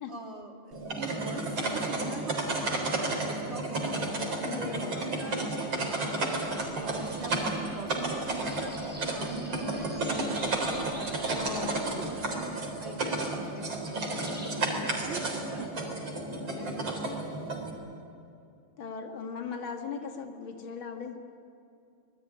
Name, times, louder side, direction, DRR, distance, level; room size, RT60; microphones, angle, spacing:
voice 1, 0.1-4.0 4.5-5.6 6.1-6.6 6.9-11.2 11.6-14.2 14.6-15.7 16.5-16.7, right 3 dB, 30° right, 2 dB, 2.8 m, -43 dB
sound 1, 0.7-17.7, right 2 dB, 65° right, 4.6 m, -32 dB
voice 2, 4.4-5.0 11.3-12.1 14.5-15.3 16.3-16.9 18.8-21.2, left 5 dB, 65° left, 4 dB, 2.7 m, -39 dB
sound 2, 4.9-14.5, equal, 5° right, 7.0 m, -48 dB
26.0 x 20.0 x 9.9 m, 2.6 s
omnidirectional pair, 2.4 m